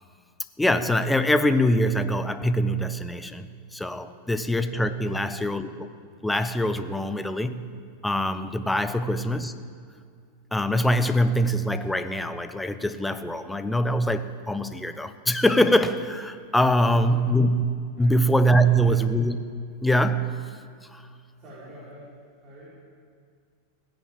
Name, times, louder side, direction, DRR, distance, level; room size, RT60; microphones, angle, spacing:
voice 1, 0.6-5.9 6.2-7.7 8.0-9.5 10.5-17.7 18.0-19.4 19.8-20.4 20.9-21.0, equal, 5° left, 11 dB, 0.8 m, -23 dB
voice 2, 5.0-5.4 16.8-17.3 18.0-18.2 18.6-19.0 21.4-22.1 22.4-22.7, equal, 35° right, -9 dB, 5.4 m, -47 dB
17.0 x 10.5 x 7.9 m, 2.2 s
figure-of-eight pair, 90°, 0 cm